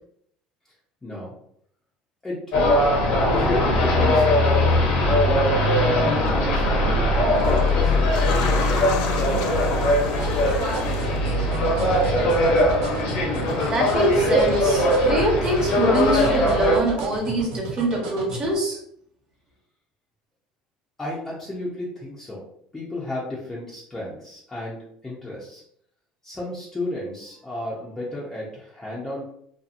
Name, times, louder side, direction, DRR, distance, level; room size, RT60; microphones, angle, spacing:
voice 1, 1.0-1.3 2.2-2.4 3.3-4.7 5.1-5.6 5.9-8.8 9.1-10.1 21.0-22.4 22.7-25.6 26.2-29.2, left 1 dB, 15° left, -6 dB, 0.6 m, -33 dB
sound 1, 2.5-16.8, left 1 dB, 55° left, 0.9 m, -20 dB
sound 2, 6.1-6.3 7.1-15.2 15.5-16.5 17.0-17.1, left 5 dB, 90° left, 0.4 m, -36 dB
sound 3, 10.2-18.5, right 2 dB, 85° right, 0.7 m, -34 dB
voice 2, 13.7-18.8, right 1 dB, 25° right, -2 dB, 0.9 m, -24 dB
2.7 x 2.4 x 2.5 m, 0.69 s
cardioid pair, 125°, 3 cm